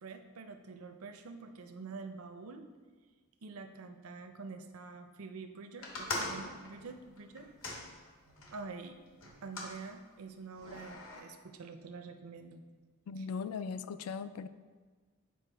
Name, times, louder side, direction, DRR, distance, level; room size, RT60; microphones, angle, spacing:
voice 1, 0.0-2.7 3.4-7.5 8.5-9.0 9.4-12.6 13.2-13.3, right 4 dB, 70° right, 7 dB, 0.5 m, -47 dB
sound 1, 5.8-8.6 9.2-9.8 10.5-11.2, left 2 dB, 60° left, 1.1 m, -41 dB
voice 2, 13.1-14.5, left 5 dB, 75° left, 13 dB, 0.3 m, -38 dB
7.8 x 4.7 x 3.3 m, 1.4 s
head